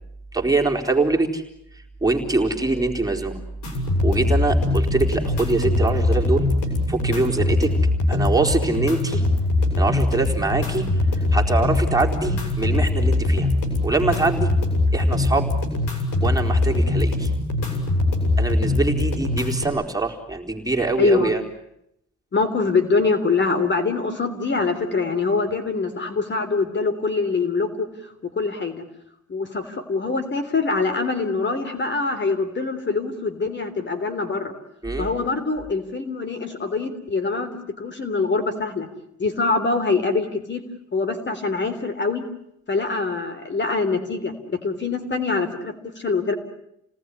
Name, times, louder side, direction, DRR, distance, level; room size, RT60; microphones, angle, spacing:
voice 1, 0.3-1.4 1.7-3.4 4.0-6.5 6.9-7.7 8.1-9.2 9.8-10.9 11.1-13.5 13.8-14.5 14.9-15.5 16.2-17.3 18.4-21.4 34.8-35.1, right 3 dB, 10° right, 1 dB, 4.1 m, -23 dB
sound 1, 3.6-19.6, left 2 dB, 80° left, 7.1 m, -22 dB
voice 2, 21.0-21.3 22.3-27.9 28.2-28.8 29.3-34.5 35.0-37.5 37.8-38.9 39.2-40.6 40.9-42.2 42.7-44.3 44.6-46.3, left 4 dB, 35° left, 9 dB, 3.5 m, -24 dB
29.5 x 19.0 x 10.0 m, 0.80 s
cardioid pair, 90°, 30 cm